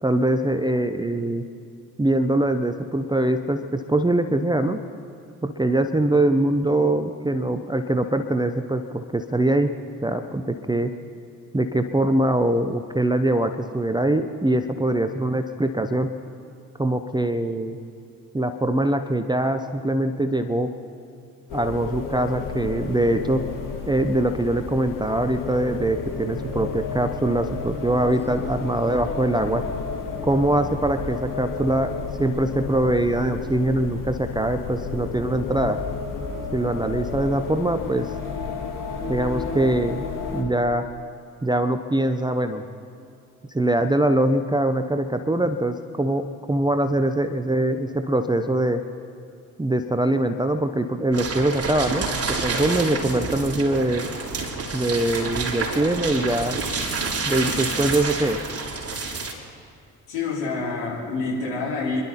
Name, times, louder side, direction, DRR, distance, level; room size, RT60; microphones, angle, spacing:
voice 1, 0.0-1.4 2.0-4.8 5.4-9.7 10.0-10.9 11.5-16.1 16.8-17.8 18.3-20.7 21.5-23.4 23.9-29.6 30.2-31.9 32.2-35.8 36.5-38.1 39.1-40.0 40.3-40.8 41.4-42.6 43.5-48.8 49.6-52.1 52.4-54.0 54.7-56.6 57.2-58.4, right 1 dB, 10° right, 8 dB, 0.9 m, -23 dB
sound 1, 21.5-40.4, left 4 dB, 45° left, 2.8 m, -32 dB
sound 2, 51.1-59.3, right 4 dB, 30° right, 3.7 m, -28 dB
voice 2, 60.1-62.0, left 3 dB, 65° left, -5 dB, 4.5 m, -27 dB
26.0 x 12.0 x 4.3 m, 2.5 s
figure-of-eight pair, 45°, 45 cm